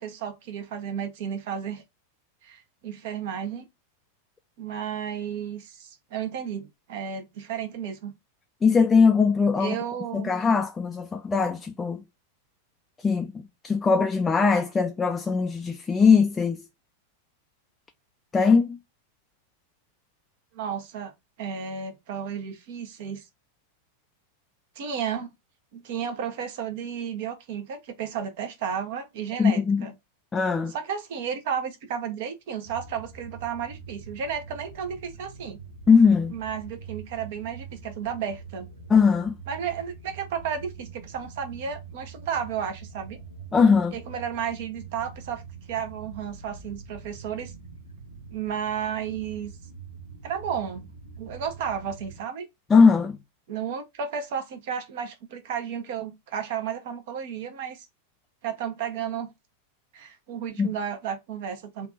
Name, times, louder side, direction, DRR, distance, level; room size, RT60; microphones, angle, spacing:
voice 1, 0.0-1.8 2.4-3.7 4.6-8.1 9.6-10.3 20.5-21.1 21.4-23.2 24.8-25.3 25.7-29.9 30.7-35.6 36.3-38.7 39.5-43.2 43.9-45.4 45.7-47.5 48.3-49.5 50.2-50.9 51.2-52.5 53.5-57.9 58.4-59.3 59.9-61.9, right 8 dB, 50° right, 0.9 m, -33 dB
voice 2, 8.6-9.8 10.1-12.0 13.0-13.3 13.6-16.7 18.3-18.8 29.4-29.9 30.3-30.7 35.9-36.3 38.9-39.4 43.5-43.9 52.7-53.2 60.6-60.7, left 5 dB, 15° left, 0.4 m, -20 dB
sound 1, 32.6-52.2, right 5 dB, 85° right, 1.0 m, -44 dB
3.4 x 2.5 x 3.9 m
figure-of-eight pair, 90°, 0 cm